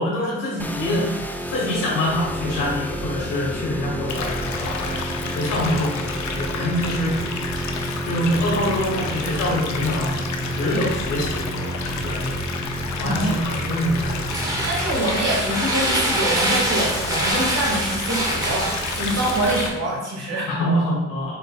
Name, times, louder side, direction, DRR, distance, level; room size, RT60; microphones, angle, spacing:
voice 1, 0.0-7.1 7.8-10.1 10.5-12.4 12.9-14.2 20.5-21.4, left 1 dB, 90° left, -4 dB, 1.3 m, -25 dB
sound 1, 0.6-14.9, right 1 dB, 5° left, 0.4 m, -31 dB
sound 2, 2.0-19.7, right 1 dB, 10° right, 1.0 m, -29 dB
sound 3, 4.1-19.7, left 5 dB, 65° left, 0.6 m, -32 dB
voice 2, 13.0-13.4 14.7-20.5, right 1 dB, 55° right, -3 dB, 1.4 m, -25 dB
4.6 x 4.1 x 2.3 m, 1.1 s
cardioid pair, 65°, 31 cm